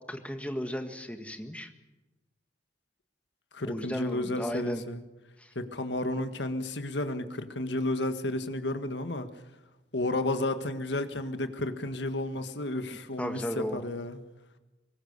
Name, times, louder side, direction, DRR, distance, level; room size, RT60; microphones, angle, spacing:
voice 1, 0.1-1.7 3.7-4.8 5.4-5.5 12.9-13.8, equal, 5° left, 6 dB, 1.6 m, -35 dB
voice 2, 3.5-5.0 5.5-9.3 9.9-14.2, left 2 dB, 75° left, 9 dB, 1.7 m, -32 dB
23.0 x 20.0 x 6.9 m, 1.1 s
head